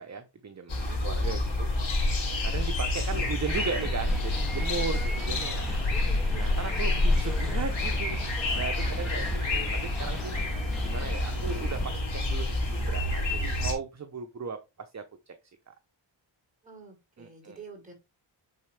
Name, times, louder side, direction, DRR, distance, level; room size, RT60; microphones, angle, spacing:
voice 1, 0.0-1.7 2.4-5.9 6.3-10.3 10.8-15.3 15.7-15.8 17.2-17.6, right 5 dB, 35° right, 7 dB, 0.8 m, -37 dB
sound 1, 0.7-13.7, left 2 dB, 85° left, 3.4 m, -28 dB
voice 2, 0.8-1.6 4.8-5.2 8.8-9.0 16.6-17.9, right 4 dB, 15° right, -1 dB, 4.6 m, -47 dB
sound 2, 3.4-11.9, equal, ahead, 1.4 m, -41 dB
9.3 x 4.2 x 3.3 m, 0.25 s
wide cardioid pair, 95°, 45 cm